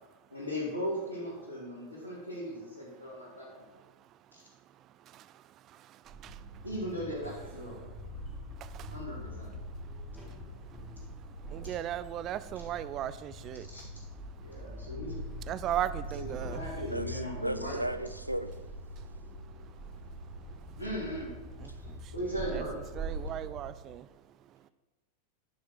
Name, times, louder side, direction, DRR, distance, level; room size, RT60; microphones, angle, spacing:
voice 1, 0.3-3.6 6.6-7.8 8.9-9.5 13.7-13.8 14.4-15.2 16.2-17.8 20.8-21.3 22.1-22.8, equal, 85° left, 2.9 m, -37 dB
sound 1, 6.1-23.7, right 1 dB, 5° left, 3.0 m, -43 dB
voice 2, 11.5-13.6 15.5-16.6 22.5-24.0, right 11 dB, 35° right, 0.3 m, -36 dB
voice 3, 16.9-18.5, right 1 dB, 90° right, 0.5 m, -35 dB
11.0 x 6.3 x 4.7 m
figure-of-eight pair, 90°, 0 cm